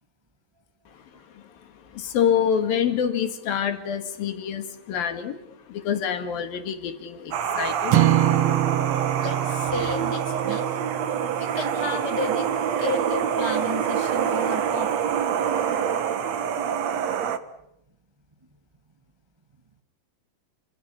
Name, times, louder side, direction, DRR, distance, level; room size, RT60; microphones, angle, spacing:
voice 1, 0.9-8.0, left 8 dB, 70° left, 8 dB, 3.9 m, -27 dB
sound 1, 7.3-17.4, right 8 dB, 55° right, 2.1 m, -26 dB
sound 2, 7.9-12.3, right 13 dB, 85° right, 1.3 m, -25 dB
voice 2, 9.2-10.6 11.4-12.5 12.8-14.9, left 2 dB, 25° right, 6 dB, 0.5 m, -32 dB
30.0 x 27.0 x 5.8 m, 0.79 s
omnidirectional pair, 4.4 m